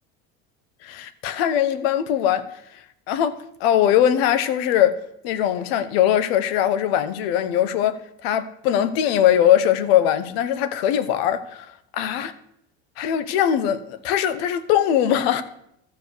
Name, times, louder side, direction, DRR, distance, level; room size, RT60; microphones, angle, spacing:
voice 1, 0.8-2.5 3.1-5.0 5.2-8.0 8.2-11.6 12.0-12.3 13.0-15.4, left 10 dB, 85° left, 13 dB, 0.9 m, -21 dB
13.5 x 4.8 x 6.5 m, 0.75 s
cardioid pair, 175°, 30 cm